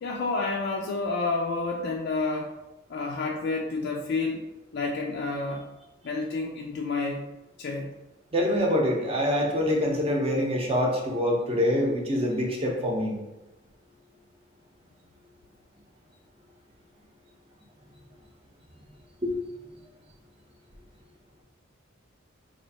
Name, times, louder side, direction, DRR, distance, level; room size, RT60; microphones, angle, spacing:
voice 1, 0.0-2.5 2.9-4.4 4.7-5.6 6.0-7.2 7.6-7.9, left 3 dB, 55° left, 0 dB, 0.3 m, -29 dB
voice 2, 8.3-13.2 19.2-19.3, left 1 dB, 30° right, 0 dB, 0.7 m, -25 dB
3.1 x 2.5 x 4.1 m, 1.0 s
head